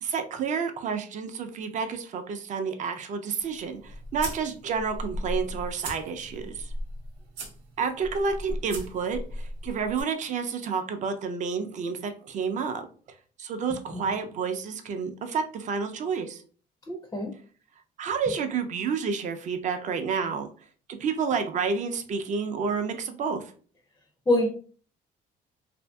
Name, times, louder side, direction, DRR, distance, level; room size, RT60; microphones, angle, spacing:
voice 1, 0.0-6.7 7.8-12.8 13.4-16.4 18.0-20.5 21.0-23.5, right 5 dB, 45° right, 0.4 m, -30 dB
sound 1, 3.4-10.0, equal, 80° right, 0.8 m, -37 dB
voice 2, 16.9-17.3 24.3-24.5, left 1 dB, 15° left, 0.4 m, -25 dB
2.5 x 2.5 x 2.2 m
cardioid pair, 110°, 17 cm